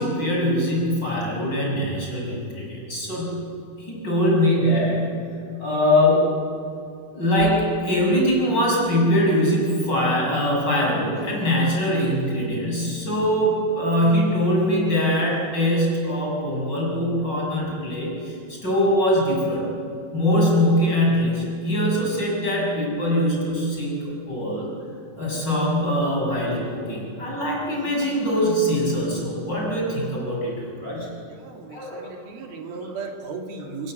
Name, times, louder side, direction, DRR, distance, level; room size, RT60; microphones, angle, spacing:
voice 1, 0.0-3.4 3.8-5.1 5.5-6.4 7.1-19.6 20.1-24.7 25.2-30.5 30.8-31.1 31.7-32.1 32.7-32.9, equal, 30° left, -3 dB, 7.4 m, -22 dB
voice 2, 31.4-33.9, right 4 dB, 80° right, 3 dB, 4.3 m, -36 dB
27.0 x 22.5 x 7.9 m, 2.4 s
omnidirectional pair, 4.2 m